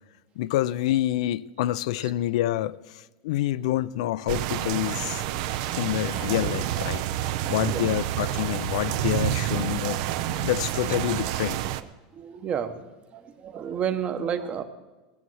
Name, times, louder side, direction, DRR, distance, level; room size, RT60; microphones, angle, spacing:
voice 1, 0.4-5.2 5.8-10.0 10.4-11.6, left 14 dB, 75° left, 0.4 m, -27 dB
sound 1, 4.3-11.8, right 13 dB, 70° right, 0.6 m, -28 dB
voice 2, 11.7-12.8 13.1-14.6, right 8 dB, 35° right, 1.1 m, -31 dB
17.5 x 7.3 x 6.3 m
supercardioid pair, 120°, 3 cm